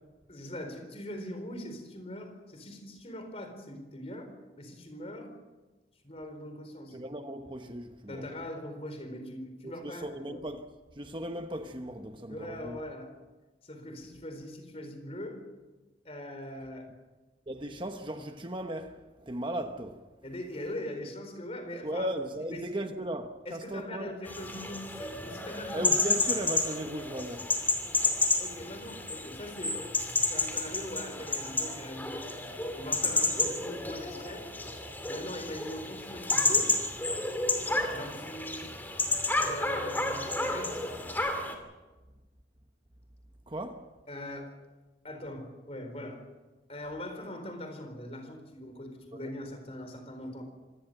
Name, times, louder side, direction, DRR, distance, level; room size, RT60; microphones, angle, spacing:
voice 1, 0.3-5.3 6.0-7.0 8.1-10.4 12.3-13.1 13.6-15.4 16.0-16.9 20.2-22.1 22.5-22.8 23.5-25.9 28.4-29.8 30.2-32.4 32.7-34.5 35.1-36.8 37.9-38.7 39.3-41.0 44.1-44.5 45.0-46.2 46.7-50.4, left 1 dB, 35° left, 4.2 m, -41 dB
voice 2, 6.9-8.2 9.6-10.7 11.0-12.8 17.5-20.1 21.8-24.1 25.7-27.5 43.5-43.9 49.1-49.3, right 1 dB, 25° right, 1.0 m, -37 dB
sound 1, 24.3-41.5, left 2 dB, 10° left, 2.6 m, -31 dB
26.0 x 18.0 x 6.7 m
head